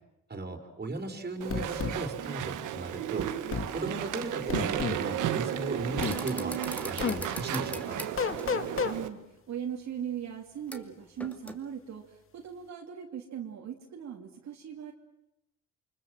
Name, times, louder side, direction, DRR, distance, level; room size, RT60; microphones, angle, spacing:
voice 1, 0.3-3.3 3.7-6.6 6.8-8.1, right 2 dB, 30° right, 4 dB, 4.6 m, -36 dB
Walk footsteps / Chatter / Squeak, 1.4-9.1, right 11 dB, 85° right, 1.8 m, -34 dB
sound 1, 1.5-2.0 3.5-3.7 4.5-5.0 6.0-6.2 7.0-7.2 8.2-9.0, left 6 dB, 45° left, 2.1 m, -30 dB
sound 2, 6.0-8.7 10.7-10.9 11.2-11.6, equal, 5° left, 2.5 m, -41 dB
voice 2, 8.8-9.2 9.5-14.9, right 9 dB, 65° right, 0 dB, 3.0 m, -39 dB
28.5 x 25.0 x 7.8 m, 0.88 s
cardioid pair, 90°, 30 cm